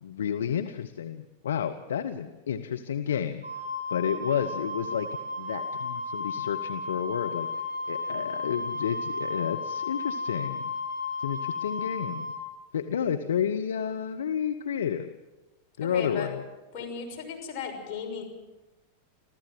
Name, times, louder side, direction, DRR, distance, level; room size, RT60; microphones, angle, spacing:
voice 1, 0.0-3.6 3.9-5.1 5.4-10.7 11.2-12.3 12.7-15.1 15.8-16.4, left 8 dB, 65° left, 6 dB, 0.9 m, -31 dB
Wind instrument woodwind instrument, 3.4-12.4, left 3 dB, 85° left, 5.6 m, -33 dB
voice 2, 15.8-16.3 16.7-18.2, left 6 dB, 40° left, 1 dB, 6.2 m, -36 dB
27.0 x 15.0 x 7.6 m, 1.1 s
figure-of-eight pair, 90°, 0 cm